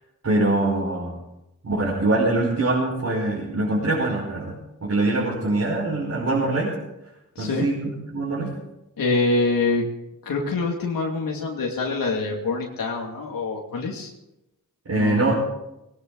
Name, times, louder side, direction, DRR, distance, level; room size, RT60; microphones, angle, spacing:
voice 1, 0.2-1.1 1.6-6.7 7.4-7.8 8.1-8.5 14.9-15.3, right 2 dB, 50° right, -5 dB, 5.1 m, -23 dB
voice 2, 7.4-7.7 9.0-9.9 10.2-14.1 14.9-15.2, left 3 dB, 90° left, -1 dB, 2.6 m, -25 dB
19.0 x 18.0 x 4.0 m, 0.92 s
wide cardioid pair, 95°, 33 cm